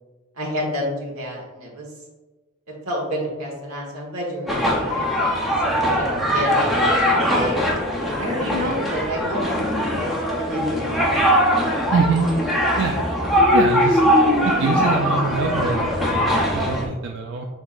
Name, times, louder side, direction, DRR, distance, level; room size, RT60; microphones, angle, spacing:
voice 1, 0.3-1.9 2.8-5.3 5.6-6.8 7.1-7.6 8.2-11.5, equal, 85° right, -2 dB, 1.3 m, -30 dB
sound 1, 4.5-16.9, equal, ahead, 0.6 m, -21 dB
voice 2, 11.9-12.3 12.8-13.0 13.5-14.0 14.6-17.5, right 4 dB, 55° right, 2 dB, 0.3 m, -24 dB
5.7 x 3.5 x 2.4 m, 1.2 s
head